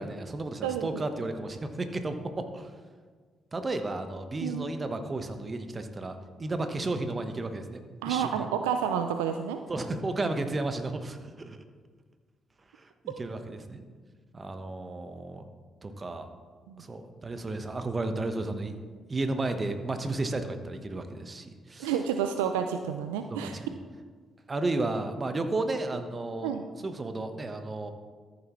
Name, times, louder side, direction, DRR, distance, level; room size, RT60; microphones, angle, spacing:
voice 1, 0.0-2.7 3.5-6.1 6.4-8.4 9.7-11.6 12.7-13.8 14.3-15.4 15.8-16.3 16.8-18.8 19.1-21.9 23.3-23.7 24.5-26.5 26.8-27.9, right 2 dB, 35° right, 8 dB, 1.1 m, -33 dB
voice 2, 0.6-1.0 4.4-4.7 8.0-9.6 16.7-16.8 21.8-23.6 26.4-26.6, right 8 dB, 85° right, 7 dB, 0.4 m, -30 dB
14.0 x 7.1 x 3.1 m, 1.5 s
hypercardioid pair, 45°, 0 cm